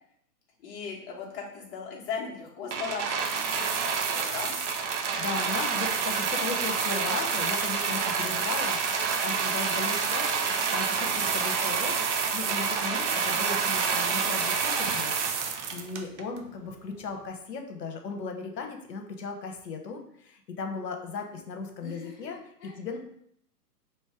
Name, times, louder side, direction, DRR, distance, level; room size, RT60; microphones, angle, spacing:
voice 1, 0.6-4.6 21.8-22.8, left 5 dB, 35° left, -2 dB, 1.3 m, -38 dB
sound 1, 2.7-16.4 17.1-17.2, right 6 dB, 45° right, 0.6 m, -28 dB
voice 2, 5.2-10.3 10.7-12.0 12.3-22.4 22.6-23.0, left 4 dB, 80° left, 4 dB, 1.0 m, -37 dB
3.2 x 3.1 x 4.7 m, 0.71 s
hypercardioid pair, 130°, 48 cm